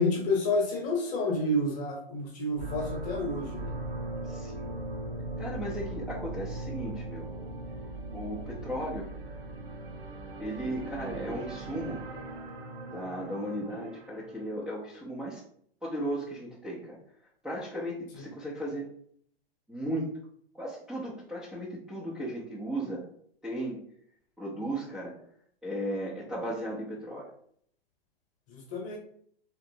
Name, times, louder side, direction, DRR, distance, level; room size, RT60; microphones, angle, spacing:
voice 1, 0.0-3.7 18.1-18.2 28.5-29.0, left 2 dB, 25° left, 1 dB, 1.0 m, -29 dB
sound 1, 2.5-14.5, right 2 dB, 60° right, 0.8 m, -39 dB
voice 2, 4.2-4.7 5.4-7.3 8.1-9.1 10.4-12.0 12.9-15.4 15.8-17.0 17.4-18.9 19.7-20.1 20.5-23.0 23.4-23.8 24.4-25.2 25.6-27.3, right 1 dB, ahead, -8 dB, 0.5 m, -36 dB
3.2 x 3.0 x 2.7 m, 0.63 s
figure-of-eight pair, 105°, 30 cm